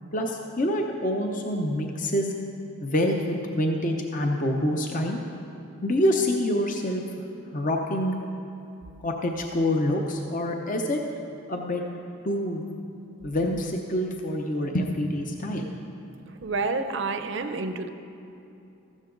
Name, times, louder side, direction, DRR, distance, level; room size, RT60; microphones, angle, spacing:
voice 1, 0.1-2.3 2.8-5.2 5.8-7.0 7.5-8.1 9.0-11.0 11.5-11.8 12.2-12.6 13.2-15.7, left 1 dB, 40° left, 2 dB, 0.7 m, -26 dB
voice 2, 16.4-17.9, right 3 dB, 55° right, 8 dB, 0.7 m, -29 dB
14.5 x 12.5 x 3.8 m, 2.7 s
head